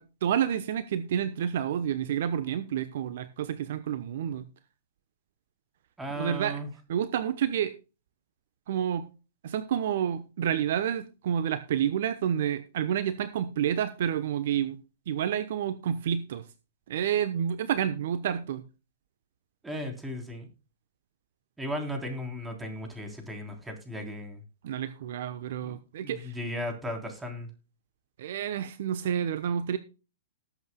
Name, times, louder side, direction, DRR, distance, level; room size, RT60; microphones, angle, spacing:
voice 1, 0.0-4.4 6.2-6.6 6.9-7.7 8.7-9.1 9.4-14.8 15.1-16.4 16.9-18.6 24.6-26.3 28.2-29.8, right 9 dB, 60° right, 12 dB, 1.0 m, -29 dB
voice 2, 6.0-6.7 19.6-20.5 21.6-24.4 25.6-25.7 26.0-27.5, equal, 10° right, 3 dB, 3.7 m, -36 dB
19.0 x 8.1 x 2.3 m, 0.32 s
figure-of-eight pair, 110°, 0 cm